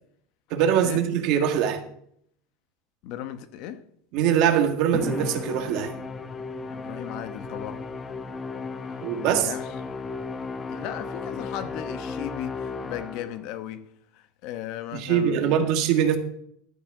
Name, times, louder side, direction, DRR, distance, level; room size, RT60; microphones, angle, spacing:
voice 1, 0.5-1.8 4.1-5.9 9.0-9.5 14.9-16.2, right 9 dB, 50° right, 1.7 m, -22 dB
voice 2, 3.0-3.8 6.7-7.8 9.2-9.7 10.7-15.7, left 11 dB, 55° left, 1.1 m, -36 dB
Musical instrument, 4.9-13.5, left 4 dB, 15° left, 0.8 m, -34 dB
12.0 x 6.0 x 7.2 m
supercardioid pair, 150°, 0 cm